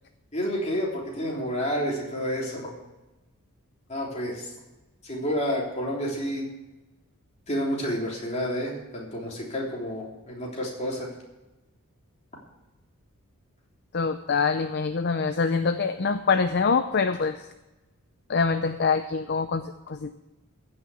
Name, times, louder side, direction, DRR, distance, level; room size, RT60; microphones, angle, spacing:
voice 1, 0.3-2.7 3.9-4.5 5.0-6.4 7.5-11.1, equal, 30° left, -2 dB, 3.4 m, -29 dB
voice 2, 13.9-17.5 18.3-20.1, left 5 dB, 50° left, 9 dB, 0.6 m, -25 dB
15.0 x 6.5 x 8.4 m, 1.1 s
head